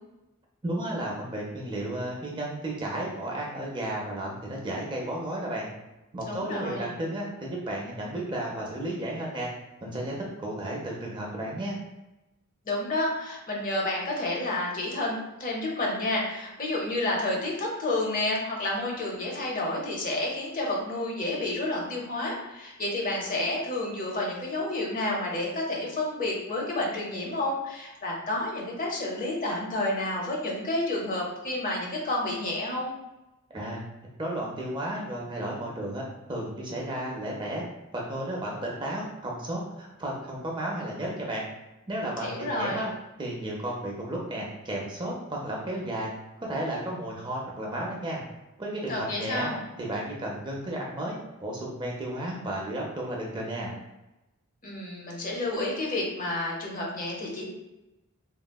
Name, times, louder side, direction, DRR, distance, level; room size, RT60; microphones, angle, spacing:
voice 1, 0.6-5.7 6.1-9.5 9.8-11.8 33.5-33.8 34.2-37.6 37.9-41.4 41.9-42.9 43.2-46.1 46.4-48.2 48.6-49.5 49.8-53.8, right 1 dB, 20° right, -2 dB, 0.4 m, -33 dB
voice 2, 6.3-6.9 12.6-32.9 42.2-42.8 48.9-49.6 54.6-57.5, left 2 dB, 40° left, -2 dB, 0.7 m, -30 dB
3.5 x 2.1 x 2.2 m, 0.98 s
head